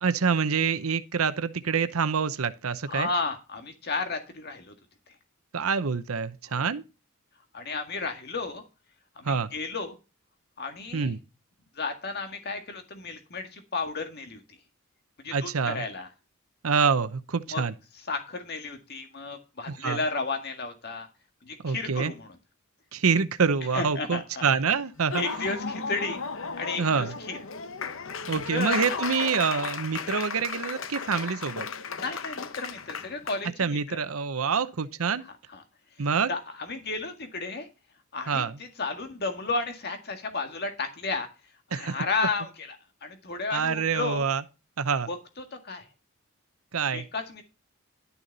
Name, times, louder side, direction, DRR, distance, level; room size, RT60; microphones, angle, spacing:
voice 1, 0.0-3.1 5.5-6.8 9.2-9.5 10.9-11.2 15.3-15.8 16.6-17.7 19.7-20.0 21.6-22.1 22.9-25.2 26.8-27.1 28.3-31.7 33.6-35.2 36.0-36.3 38.3-38.6 41.7-42.0 43.5-44.4 44.8-45.1 46.7-47.0, right 5 dB, 85° right, 0.8 m, -26 dB
voice 2, 2.9-4.7 6.5-6.7 7.5-8.7 9.2-10.0 10.6-11.1 11.8-14.4 15.2-16.1 17.5-17.6 18.1-21.1 21.5-22.4 23.7-24.5 25.2-26.2 26.6-27.4 28.5-29.0 32.0-34.0 35.5-35.6 36.3-37.7 38.1-41.3 41.7-42.8 43.0-44.2 45.1-45.2 45.6-45.8 46.9-47.4, left 3 dB, 50° left, 1.8 m, -33 dB
Laughter / Applause, 25.0-33.4, left 5 dB, 65° left, 0.9 m, -35 dB
12.0 x 6.9 x 4.0 m
head